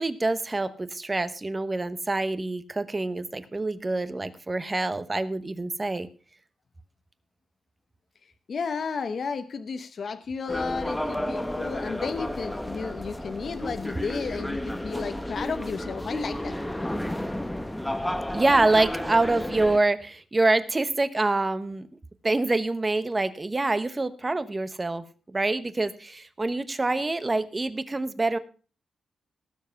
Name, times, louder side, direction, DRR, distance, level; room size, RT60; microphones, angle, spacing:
voice 1, 0.0-6.1 18.3-21.9 22.2-28.4, right 2 dB, 20° right, 13 dB, 1.0 m, -26 dB
voice 2, 8.5-16.5, left 5 dB, 50° left, 9 dB, 0.8 m, -33 dB
sound 1, 10.5-19.8, left 1 dB, 5° left, 0.9 m, -32 dB
18.5 x 7.4 x 5.7 m, 0.38 s
wide cardioid pair, 155°, 0 cm